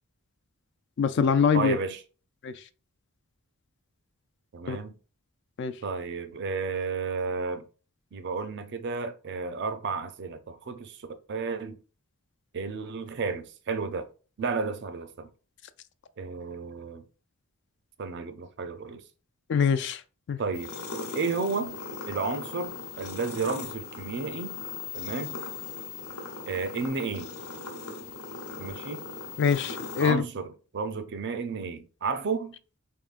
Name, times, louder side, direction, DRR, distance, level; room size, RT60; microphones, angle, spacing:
voice 1, 1.0-1.8 2.4-2.5 4.7-4.8 5.6-5.7 19.5-20.0 20.3-20.4 29.4-30.2, left 6 dB, 50° left, 0.3 m, -24 dB
voice 2, 1.5-2.0 4.5-4.9 5.8-7.7 8.1-11.8 12.5-14.1 14.4-15.3 16.2-17.0 18.0-19.0 20.4-20.7 21.2-21.8 22.1-24.6 24.9-25.4 26.5-27.3 28.6-29.0 30.0-32.6, right 4 dB, 50° right, 0.5 m, -32 dB
sound 1, 20.5-30.1, left 4 dB, 90° left, 1.0 m, -39 dB
4.4 x 3.6 x 2.4 m
head